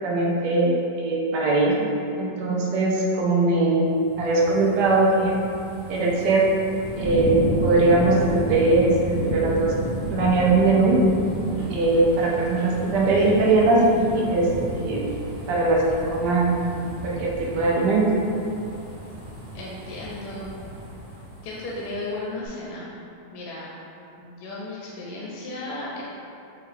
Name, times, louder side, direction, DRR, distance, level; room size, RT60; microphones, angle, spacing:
voice 1, 0.0-1.9 2.2-3.8 4.2-5.3 5.9-6.4 7.0-9.7 10.1-11.0 11.7-15.0 15.5-15.8 16.1-16.6 17.0-18.1, right 3 dB, 85° right, -3 dB, 1.3 m, -20 dB
sound 1, 3.9-22.0 22.4-22.5, right 1 dB, 45° right, 0.4 m, -32 dB
voice 2, 19.5-20.5 21.4-22.9 23.3-23.7 24.2-26.0, left 2 dB, 80° left, -5 dB, 1.1 m, -34 dB
5.4 x 2.3 x 3.3 m, 2.7 s
omnidirectional pair, 1.8 m